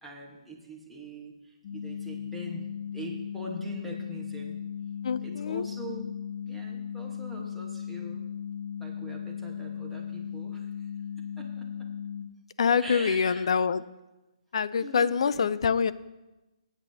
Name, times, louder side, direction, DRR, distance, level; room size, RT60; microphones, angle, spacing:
voice 1, 0.0-2.7 2.9-4.6 5.2-6.1 6.5-8.2 8.8-10.7 11.4-11.9 12.7-13.5 14.8-15.6, right 1 dB, ahead, -4 dB, 1.3 m, -43 dB
sound 1, 1.6-12.3, left 8 dB, 35° left, 1.1 m, -37 dB
voice 2, 5.0-5.6 12.6-13.8 14.5-15.9, left 6 dB, 60° left, 16 dB, 0.4 m, -25 dB
18.0 x 8.2 x 2.8 m, 1.1 s
hypercardioid pair, 160°, 3 cm